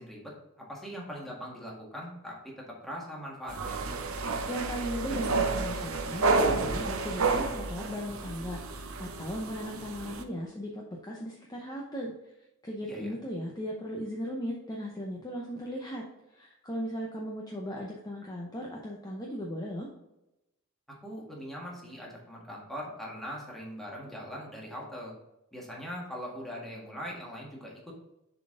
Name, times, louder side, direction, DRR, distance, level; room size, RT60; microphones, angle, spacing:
voice 1, 0.0-3.8 12.9-13.2 21.0-25.1 25.5-27.9, equal, ahead, -3 dB, 1.6 m, -41 dB
sound 1, 3.5-10.2, right 3 dB, 75° right, 0.7 m, -30 dB
voice 2, 4.5-12.1 12.6-16.0 16.3-19.9, equal, 20° left, -2 dB, 0.7 m, -37 dB
6.9 x 4.1 x 3.8 m, 0.90 s
head